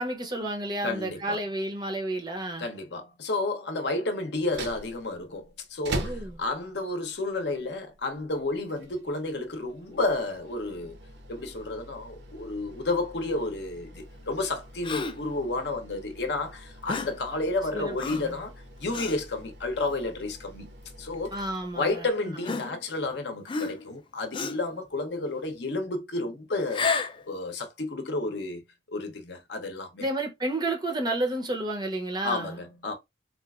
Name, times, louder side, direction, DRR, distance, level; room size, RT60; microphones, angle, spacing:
voice 1, 0.0-2.7 6.0-6.4 17.7-18.4 21.3-22.4 30.0-32.6, right 1 dB, 20° right, 0.5 m, -31 dB
voice 2, 0.8-1.4 2.6-11.0 11.3-18.5 18.8-21.4 21.7-26.9 27.3-28.6 28.9-30.0 32.2-32.9, left 2 dB, 60° left, 0.7 m, -31 dB
sound 1, 4.3-22.1, right 2 dB, 60° right, 0.6 m, -44 dB
Gasp, 14.8-15.3 16.9-17.2 18.0-18.4 18.9-19.2 19.9-20.1 21.1-21.2 22.4-23.1 23.5-23.9 24.3-24.7 26.6-27.2, left 4 dB, 25° left, 0.3 m, -31 dB
3.8 x 2.4 x 2.3 m
head